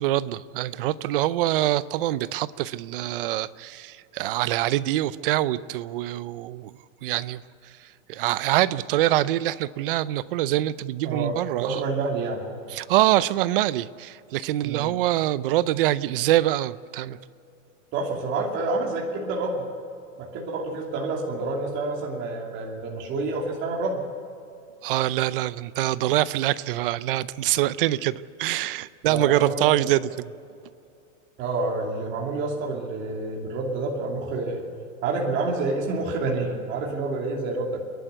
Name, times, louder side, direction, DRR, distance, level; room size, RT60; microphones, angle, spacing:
voice 1, 0.0-6.7 7.0-7.4 8.1-11.8 12.7-17.2 24.8-30.3, right 15 dB, 45° right, 17 dB, 0.6 m, -24 dB
voice 2, 11.0-12.4 14.6-14.9 17.9-19.7 20.2-24.1 29.0-29.9 31.4-34.6 35.0-37.8, right 3 dB, 30° right, -1 dB, 2.8 m, -28 dB
29.5 x 11.5 x 8.1 m, 2.5 s
supercardioid pair, 160°, 39 cm